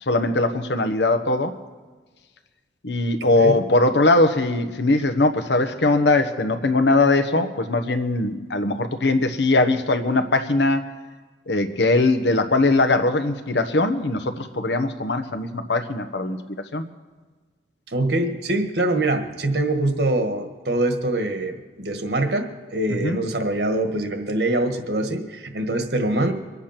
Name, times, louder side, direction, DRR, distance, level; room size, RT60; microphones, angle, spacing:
voice 1, 0.1-1.5 2.8-10.8 11.5-16.4 16.7-16.8 22.9-23.2, left 2 dB, 80° left, 7 dB, 1.1 m, -20 dB
voice 2, 3.2-3.5 17.9-26.3, right 2 dB, 70° right, 6 dB, 1.6 m, -24 dB
24.0 x 8.4 x 5.9 m, 1.4 s
head